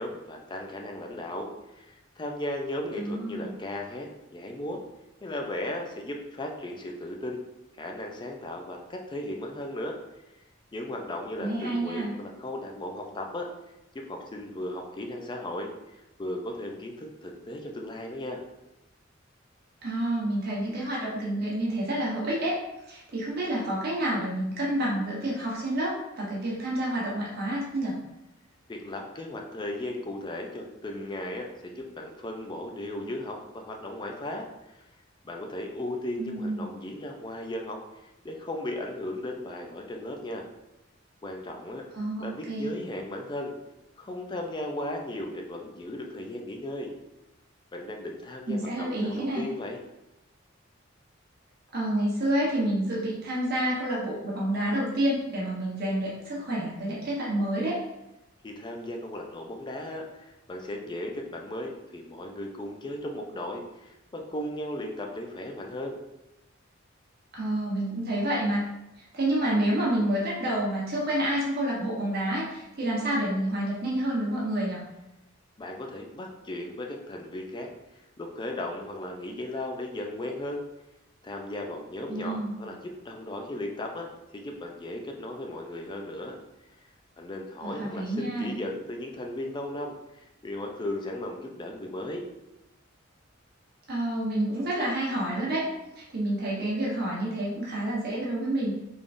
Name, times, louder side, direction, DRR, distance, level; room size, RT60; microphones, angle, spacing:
voice 1, 0.0-4.1 4.3-4.8 5.2-7.4 7.7-10.0 10.7-13.5 13.9-18.4 28.7-34.4 34.7-34.8 35.2-40.4 41.2-41.8 42.2-43.5 44.0-46.9 47.7-49.8 58.4-66.0 75.6-77.7 78.2-80.6 81.2-84.1 84.3-86.3 87.2-89.9 90.4-92.2, left 1 dB, 25° left, 2 dB, 0.4 m, -36 dB
voice 2, 3.0-3.5 11.4-12.1 19.8-22.6 22.9-28.0 36.2-36.7 41.9-42.7 48.5-49.4 51.7-57.8 67.3-68.6 69.1-74.8 82.1-82.6 87.6-88.5 93.9-95.6 96.0-98.7, right 1 dB, 50° right, -5 dB, 1.0 m, -29 dB
3.6 x 3.4 x 2.5 m, 0.93 s
head